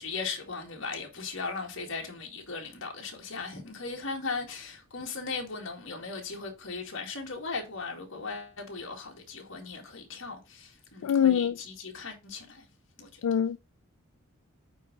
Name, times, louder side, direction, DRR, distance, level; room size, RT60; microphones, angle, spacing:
voice 1, 0.0-12.6 13.0-13.2, left 4 dB, 55° left, 1.9 m, -38 dB
voice 2, 11.0-11.5 13.2-13.6, left 8 dB, 85° left, 0.4 m, -24 dB
9.1 x 3.7 x 5.1 m
head